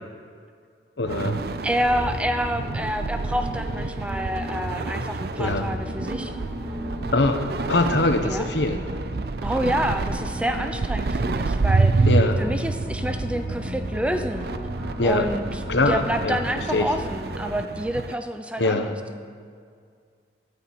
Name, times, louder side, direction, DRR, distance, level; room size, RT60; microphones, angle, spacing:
voice 1, 1.0-1.4 5.4-5.7 7.1-8.8 12.1-12.4 15.0-15.3 15.7-16.4 16.7-16.9 18.6-18.9, left 2 dB, 85° left, 7 dB, 1.1 m, -23 dB
sound 1, 1.1-17.5, left 1 dB, 30° right, 2.4 m, -35 dB
sound 2, 1.1-18.2, right 3 dB, 60° right, 0.5 m, -28 dB
voice 2, 1.6-6.3 8.2-8.5 9.4-12.1 12.4-14.5 15.0-15.6 15.9-18.9, equal, 5° right, 7 dB, 0.5 m, -28 dB
13.5 x 7.0 x 8.6 m, 2.2 s
head